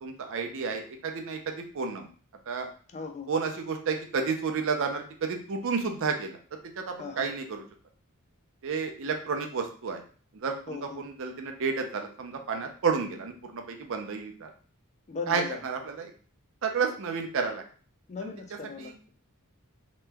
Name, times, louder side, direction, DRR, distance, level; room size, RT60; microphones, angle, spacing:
voice 1, 0.0-2.1 2.5-2.7 3.3-7.6 8.6-10.0 10.3-14.5 15.3-16.1 16.6-17.6 18.2-18.3 18.8-18.9, right 5 dB, 60° right, 4 dB, 0.5 m, -31 dB
voice 2, 2.9-3.3 7.0-7.3 10.7-11.0 15.1-15.6 18.1-19.1, left 4 dB, 30° left, 5 dB, 0.3 m, -38 dB
2.9 x 2.2 x 3.3 m, 0.41 s
head